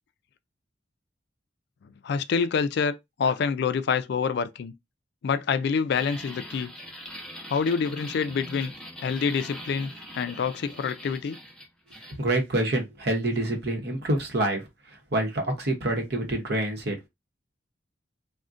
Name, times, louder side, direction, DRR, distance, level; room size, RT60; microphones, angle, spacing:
voice 1, 2.0-4.7 5.2-6.7 7.5-8.7 9.0-11.4, left 6 dB, 60° left, 0.3 m, -27 dB
sound 1, 5.9-12.2, equal, 5° left, 0.6 m, -42 dB
voice 2, 12.2-14.6 15.1-17.1, right 1 dB, 60° right, 0.8 m, -26 dB
3.6 x 2.1 x 2.5 m
head